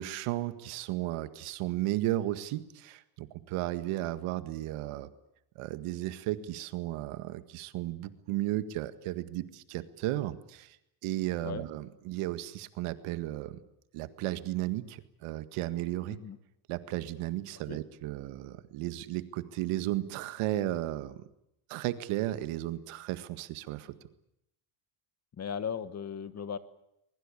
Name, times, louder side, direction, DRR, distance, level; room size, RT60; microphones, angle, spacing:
voice 1, 0.0-5.1 5.6-10.8 11.0-13.6 13.9-16.2 16.7-21.2 21.7-24.0, right 15 dB, 85° right, 12 dB, 1.9 m, -34 dB
voice 2, 25.4-26.6, left 7 dB, 30° left, 14 dB, 1.4 m, -37 dB
23.0 x 22.0 x 8.6 m, 0.82 s
cardioid pair, 145°, 49 cm